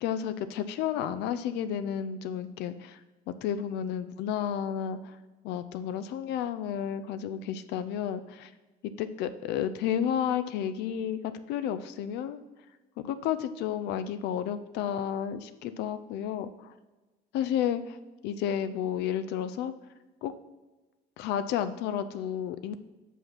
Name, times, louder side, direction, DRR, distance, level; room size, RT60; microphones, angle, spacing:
voice 1, 0.0-3.0 3.3-5.2 5.4-8.5 8.8-11.2 11.5-12.4 13.0-16.8 17.3-17.8 18.2-19.7 20.2-20.3 21.2-22.8, left 9 dB, 85° left, 11 dB, 0.4 m, -31 dB
6.0 x 5.5 x 5.6 m, 1.2 s
cardioid pair, 110°, 17 cm